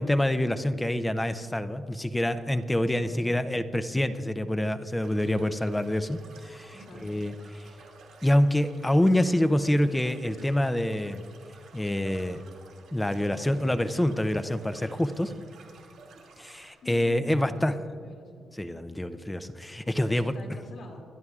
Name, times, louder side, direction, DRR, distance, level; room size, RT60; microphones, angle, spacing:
voice 1, 0.0-6.7 7.0-7.3 8.2-11.2 11.7-12.4 12.9-15.3 16.4-17.7 18.5-20.3, left 1 dB, 10° left, 11 dB, 0.5 m, -26 dB
voice 2, 2.9-3.5 6.7-7.3 16.8-18.5 19.8-21.0, left 1 dB, 75° left, -1 dB, 2.6 m, -47 dB
sound 1, 5.0-16.7, right 4 dB, 85° right, 2.8 m, -53 dB
27.0 x 11.0 x 2.4 m, 2.3 s
cardioid pair, 95°, 0 cm